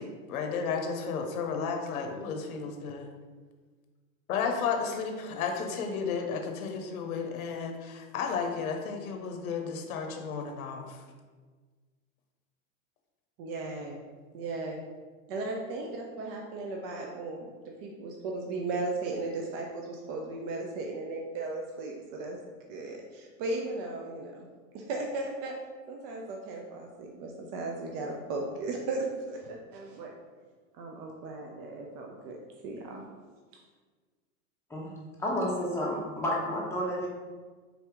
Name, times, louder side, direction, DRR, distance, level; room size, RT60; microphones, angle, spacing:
voice 1, 0.0-3.1 4.3-11.1, left 5 dB, 80° left, 4 dB, 0.7 m, -33 dB
voice 2, 13.4-14.0 14.3-14.8 15.3-17.5 17.8-22.4 22.7-24.5 24.7-25.6 25.9-30.1 30.7-32.4 32.6-33.0, right 2 dB, 45° right, 0 dB, 0.7 m, -36 dB
voice 3, 35.2-37.1, equal, 5° left, -5 dB, 1.0 m, -30 dB
4.0 x 2.8 x 3.5 m, 1.4 s
hypercardioid pair, 105°, 42 cm